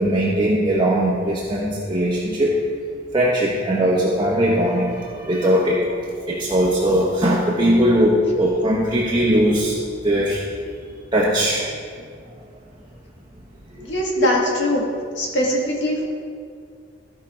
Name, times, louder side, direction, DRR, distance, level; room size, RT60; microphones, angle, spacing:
voice 1, 0.0-2.6 3.1-5.9 6.3-9.8 10.0-10.4 11.1-11.6 14.2-14.3, equal, 20° right, -6 dB, 1.0 m, -19 dB
voice 2, 13.8-14.8 15.2-16.0, left 1 dB, 65° left, -2 dB, 1.8 m, -22 dB
14.0 x 5.1 x 4.4 m, 2.2 s
head